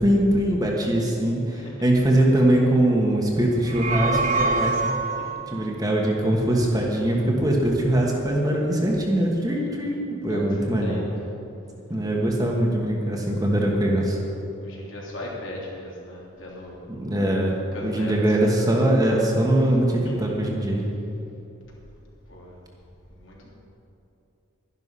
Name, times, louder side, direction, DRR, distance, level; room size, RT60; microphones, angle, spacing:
voice 1, 0.0-4.9 5.5-11.0 11.9-14.2 16.9-17.5 17.8-20.9, right 1 dB, 20° right, -1 dB, 1.4 m, -22 dB
voice 2, 1.5-1.8 5.2-5.4 9.5-10.0 10.2-11.3 14.5-16.9 17.7-18.4 19.6-19.8 20.0-20.3 22.3-22.6 23.1-23.5, left 1 dB, 70° left, -4 dB, 3.1 m, -38 dB
sound 1, 3.5-5.5, right 3 dB, 35° right, 0.8 m, -25 dB
12.0 x 11.0 x 5.5 m, 2.8 s
head